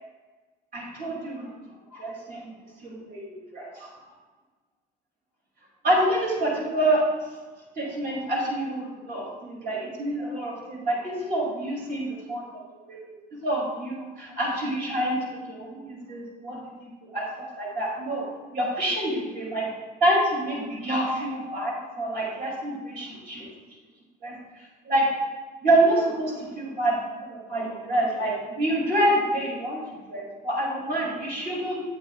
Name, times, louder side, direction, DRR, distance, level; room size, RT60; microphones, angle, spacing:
voice 1, 0.7-1.5 1.9-2.5 2.8-3.9 5.8-7.0 7.8-12.4 12.7-13.0 13.3-15.2 15.5-18.3 18.5-19.7 20.0-23.5 24.2-24.4 24.8-25.1 25.6-29.8 30.1-31.8, right 1 dB, 60° right, -4 dB, 2.9 m, -27 dB
11.5 x 8.6 x 2.4 m, 1.3 s
cardioid pair, 110°, 17 cm